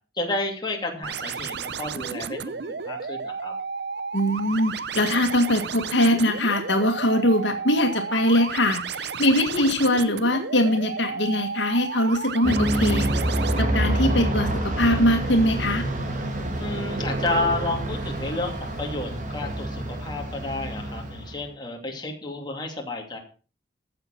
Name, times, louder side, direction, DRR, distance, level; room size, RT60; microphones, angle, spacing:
voice 1, 0.2-2.6 2.9-3.5 16.6-23.2, left 2 dB, 25° left, 1 dB, 2.7 m, -31 dB
sound 1, 1.0-13.6, right 5 dB, 60° right, 0.7 m, -33 dB
voice 2, 4.1-13.1 13.6-15.8, left 1 dB, 70° left, 5 dB, 1.9 m, -22 dB
Aircraft, 12.4-21.5, right 1 dB, 40° right, 2.3 m, -27 dB
14.5 x 6.9 x 5.9 m, 0.37 s
head